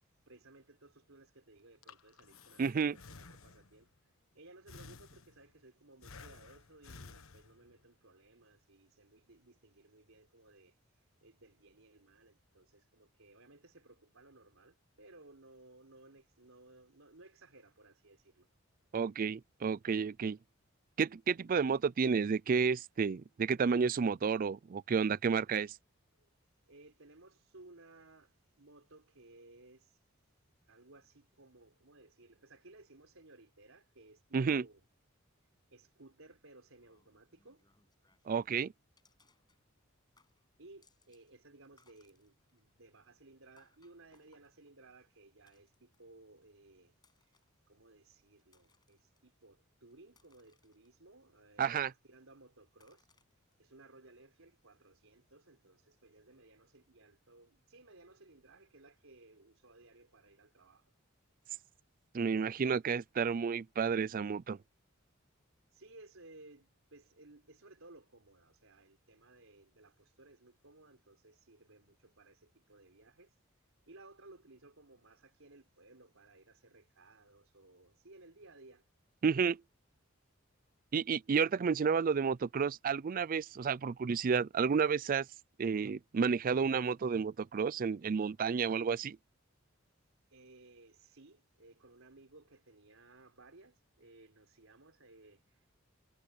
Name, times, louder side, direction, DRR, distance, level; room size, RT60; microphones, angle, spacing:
voice 1, 0.3-3.9 4.3-10.8 11.2-18.5 26.2-26.3 26.7-30.0 30.7-34.8 35.7-37.6 40.6-46.9 47.7-53.1 53.6-60.9 65.7-73.3 73.9-78.9 90.3-95.8, right 2 dB, 85° right, 3.9 m, -59 dB
Breathing, 1.6-3.9 4.7-5.6 6.0-7.8, left 4 dB, 85° left, 1.3 m, -54 dB
voice 2, 2.6-3.0 18.9-20.4 21.0-25.7 34.3-34.6 38.3-38.7 51.6-51.9 62.1-64.6 79.2-79.6 80.9-85.3 85.6-89.2, right 6 dB, 45° right, 0.4 m, -31 dB
sound 1, 36.7-38.5 39.0-39.9 40.2-41.3 41.6-46.2 46.9-47.6 48.2-49.2 49.7-51.2 51.7-52.3 52.8-53.5, left 4 dB, 20° left, 8.0 m, -73 dB
head